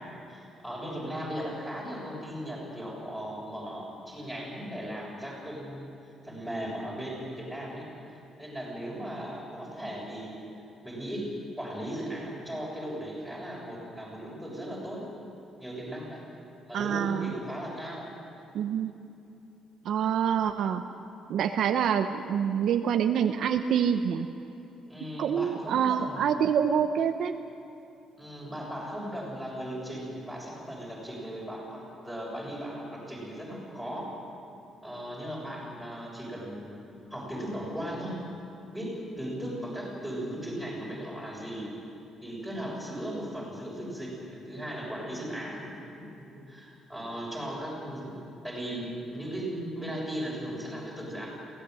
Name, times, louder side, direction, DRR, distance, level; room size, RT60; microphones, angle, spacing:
voice 1, 0.0-5.9 6.2-7.8 8.1-10.4 10.8-15.1 15.6-16.2 16.7-18.1 24.9-26.4 28.2-34.1 34.8-36.8 37.1-38.2 38.7-41.8 42.2-48.2 48.4-51.3, equal, ahead, -4 dB, 6.5 m, -37 dB
voice 2, 16.7-17.3 18.5-18.9 19.8-20.8 21.3-24.3 25.2-27.3, right 8 dB, 60° right, 6 dB, 0.9 m, -26 dB
23.0 x 17.0 x 7.9 m, 2.9 s
cardioid pair, 165°, 0 cm